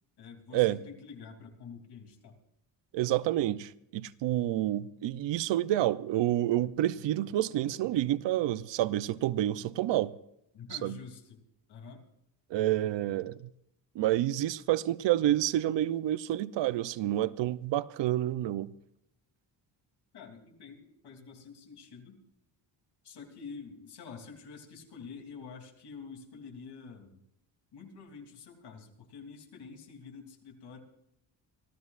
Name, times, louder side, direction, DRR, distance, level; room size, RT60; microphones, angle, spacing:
voice 1, 0.2-2.4 10.5-11.4 11.7-12.0 20.1-22.2 23.0-27.2 27.7-30.8, left 5 dB, 65° left, 3.0 m, -47 dB
voice 2, 2.9-10.1 10.8-11.0 12.5-13.5 13.9-18.7, right 13 dB, 85° right, 0.7 m, -29 dB
26.0 x 15.0 x 2.5 m
cardioid pair, 145°, 42 cm